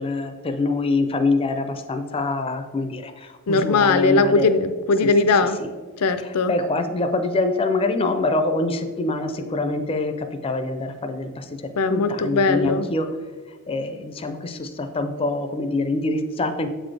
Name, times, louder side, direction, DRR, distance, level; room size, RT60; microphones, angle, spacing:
voice 1, 0.0-4.5 5.6-5.7 6.2-11.5 11.9-13.1 13.7-16.7, left 2 dB, 25° left, 8 dB, 0.4 m, -25 dB
voice 2, 3.5-5.6 6.0-6.5 11.8-12.9, left 3 dB, 90° left, 10 dB, 0.5 m, -19 dB
7.7 x 4.0 x 3.3 m, 1.5 s
head